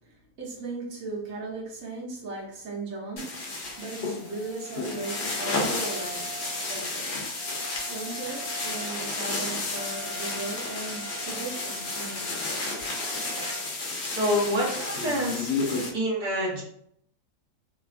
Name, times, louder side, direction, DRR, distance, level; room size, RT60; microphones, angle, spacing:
voice 1, 0.0-7.2 7.6-12.5, right 3 dB, 65° right, -4 dB, 1.3 m, -38 dB
sound 1, 3.2-15.9, left 3 dB, 60° left, 0.7 m, -32 dB
Wind instrument woodwind instrument, 3.7-13.7, right 5 dB, 80° right, 1.2 m, -45 dB
voice 2, 14.1-15.5 15.9-16.6, equal, 40° right, -3 dB, 0.8 m, -27 dB
3.0 x 2.3 x 2.4 m, 0.68 s
omnidirectional pair, 1.6 m